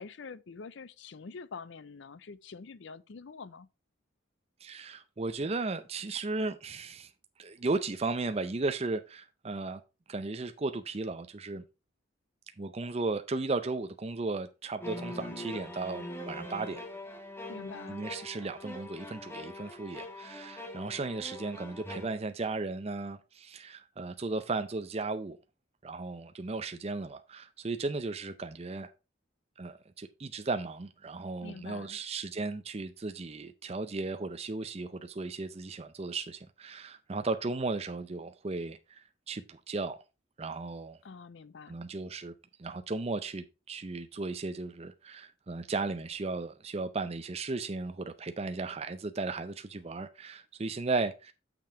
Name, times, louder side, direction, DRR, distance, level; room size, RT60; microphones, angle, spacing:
voice 1, 0.0-3.7 17.5-18.1 31.4-32.0 41.0-41.8, left 4 dB, 65° left, 0.5 m, -46 dB
voice 2, 4.6-7.1 7.4-9.8 10.1-11.6 12.6-16.8 17.9-25.4 25.8-28.9 29.6-40.0 40.4-41.0 41.7-42.3 42.6-51.3, right 3 dB, 30° right, 0.5 m, -35 dB
sound 1, 14.8-22.1, left 1 dB, 10° left, 1.4 m, -42 dB
6.9 x 5.9 x 4.3 m
head